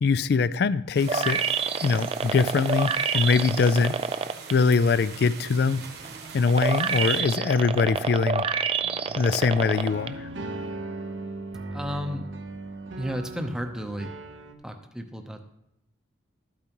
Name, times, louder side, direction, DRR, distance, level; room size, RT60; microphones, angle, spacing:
voice 1, 0.0-1.4 1.8-4.0 4.5-5.9 6.3-8.4 9.2-10.3, left 4 dB, 55° left, 16 dB, 0.3 m, -23 dB
sound 1, 0.9-7.2, right 6 dB, 55° right, 1.3 m, -43 dB
sound 2, 1.1-4.5 5.0-10.1 10.6-10.7, right 6 dB, 30° right, 0.3 m, -27 dB
sound 3, 8.8-14.5, right 2 dB, 75° right, 0.9 m, -38 dB
voice 2, 11.7-12.3 12.9-14.1 14.6-15.4, equal, 5° right, 5 dB, 0.7 m, -32 dB
13.0 x 8.6 x 3.0 m, 0.82 s
head